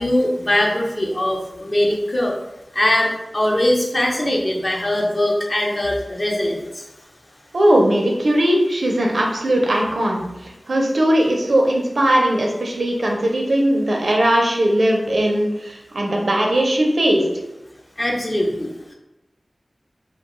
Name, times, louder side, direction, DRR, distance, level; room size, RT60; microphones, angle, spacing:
voice 1, 0.0-2.4 2.7-6.8 18.0-18.9, left 1 dB, 45° left, -1 dB, 0.6 m, -21 dB
voice 2, 7.5-10.2 10.7-17.3, right 1 dB, 75° right, 0 dB, 0.5 m, -18 dB
2.3 x 2.2 x 2.9 m, 0.96 s
cardioid pair, 40°, 0 cm